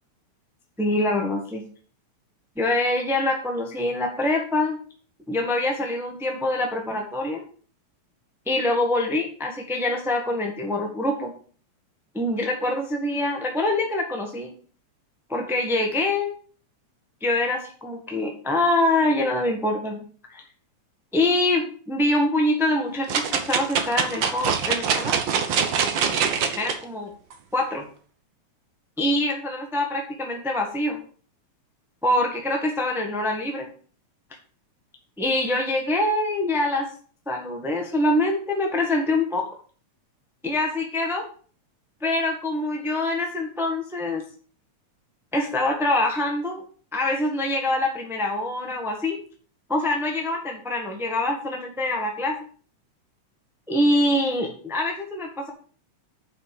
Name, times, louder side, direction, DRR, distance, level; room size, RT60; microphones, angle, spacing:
voice 1, 0.8-1.6 2.6-4.8 5.3-7.5 8.5-11.3 12.1-14.5 15.3-16.3 17.2-20.0 20.3-20.4 21.1-25.2 26.6-27.1 27.5-27.8 29.0-31.0 32.0-33.7 35.2-36.9 37.3-39.4 40.4-41.2 42.0-44.2 45.3-46.6 46.9-49.2 49.7-52.4 53.7-55.5, left 1 dB, 5° right, 1 dB, 0.4 m, -24 dB
sound 1, 23.1-26.8 27.3-27.4, right 6 dB, 60° right, 1.2 m, -24 dB
7.7 x 5.7 x 7.6 m, 0.44 s
omnidirectional pair, 3.4 m